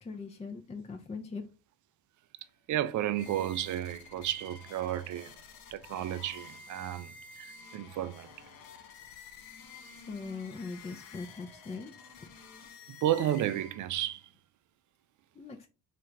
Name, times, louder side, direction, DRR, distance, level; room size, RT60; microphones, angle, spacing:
voice 1, 0.0-1.4 9.9-12.3 15.3-15.7, left 4 dB, 15° left, 0.4 m, -41 dB
voice 2, 2.7-5.3 5.7-8.5 13.0-14.3, right 12 dB, 45° right, 0.4 m, -32 dB
sound 1, 3.1-14.1, left 4 dB, 60° left, 0.7 m, -51 dB
3.1 x 2.5 x 3.0 m
hypercardioid pair, 60°, 42 cm